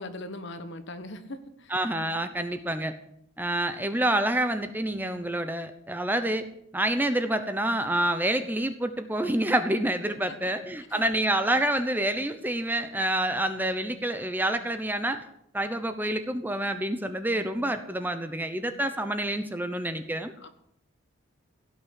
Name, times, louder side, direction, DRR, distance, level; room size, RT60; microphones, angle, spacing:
voice 1, 0.0-1.7 10.3-10.4 10.9-11.1 20.4-20.5, left 2 dB, 55° left, 10 dB, 1.4 m, -40 dB
voice 2, 1.7-2.9 3.4-6.5 6.7-15.2 15.5-20.3, right 1 dB, 10° right, 9 dB, 0.9 m, -27 dB
16.5 x 6.3 x 9.7 m, 0.70 s
head